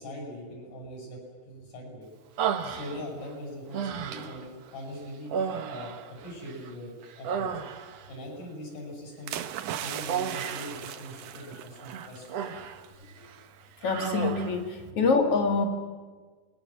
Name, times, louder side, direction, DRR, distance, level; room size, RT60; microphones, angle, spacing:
voice 1, 0.0-2.1 2.6-7.6 8.1-12.3 14.8-15.0, equal, 75° left, 0 dB, 9.0 m, -41 dB
Human voice, 2.4-3.3 3.7-4.5 5.3-6.7 7.0-8.1 10.1-10.8 11.8-12.8 13.2-13.4 13.8-14.6, right 7 dB, 60° right, 2.0 m, -33 dB
sound 1, 9.3-12.3 12.6-12.9, right 11 dB, 85° right, 2.6 m, -38 dB
voice 2, 13.8-15.7, left 4 dB, 50° left, 5 dB, 2.9 m, -25 dB
27.5 x 21.5 x 7.6 m, 1.4 s
omnidirectional pair, 3.7 m